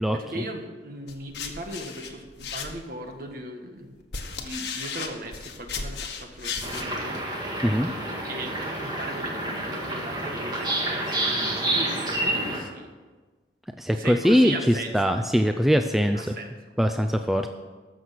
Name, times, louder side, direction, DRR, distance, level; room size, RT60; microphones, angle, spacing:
voice 1, 0.1-3.9 4.3-7.2 8.3-12.9 13.9-15.2 16.1-16.5, right 1 dB, 50° right, 4 dB, 1.5 m, -37 dB
sound 1, 1.1-3.1 3.8-6.9, left 5 dB, 80° left, 1.5 m, -35 dB
sound 2, 6.6-12.6, right 1 dB, 25° right, 1.9 m, -29 dB
voice 2, 13.8-14.5 14.9-16.3 16.8-17.5, equal, ahead, 6 dB, 0.4 m, -21 dB
14.0 x 6.4 x 7.6 m, 1.3 s
head